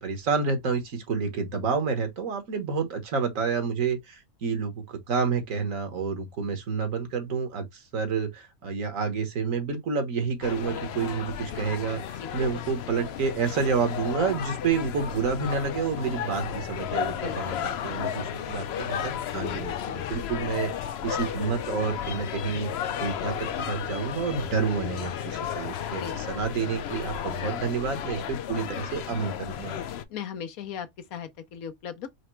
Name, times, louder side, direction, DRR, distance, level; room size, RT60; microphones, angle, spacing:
voice 1, 0.0-20.7 21.0-22.7 23.0-29.8, right 5 dB, 70° right, 1.6 m, -29 dB
sound 1, 10.4-30.0, left 9 dB, 60° left, 0.7 m, -33 dB
voice 2, 17.1-17.7 26.0-26.1 30.1-32.1, left 8 dB, 85° left, 1.3 m, -38 dB
5.0 x 2.1 x 4.5 m
omnidirectional pair, 1.5 m